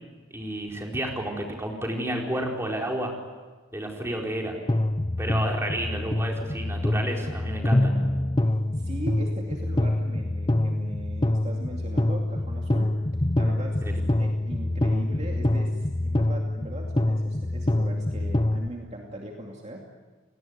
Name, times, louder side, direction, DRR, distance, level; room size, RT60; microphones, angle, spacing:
voice 1, 0.3-3.1 3.7-4.6 5.2-7.9 13.8-13.9, right 1 dB, 15° right, 0 dB, 4.4 m, -31 dB
sound 1, 4.7-18.7, left 1 dB, 25° left, 0.8 m, -26 dB
voice 2, 8.4-13.0 13.4-19.8, right 1 dB, 35° right, 0 dB, 2.6 m, -39 dB
30.0 x 19.5 x 9.5 m, 1.3 s
head